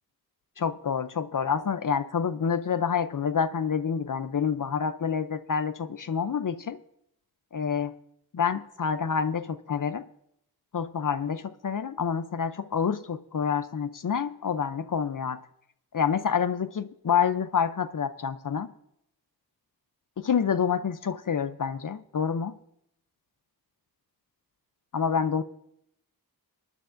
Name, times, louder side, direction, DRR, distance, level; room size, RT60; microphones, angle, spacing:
voice 1, 0.6-6.8 7.5-7.9 8.3-10.1 10.7-15.4 15.9-18.7 20.2-22.6 24.9-25.4, left 7 dB, 55° left, 13 dB, 0.5 m, -28 dB
22.0 x 10.0 x 2.5 m, 0.75 s
wide cardioid pair, 75°, 38 cm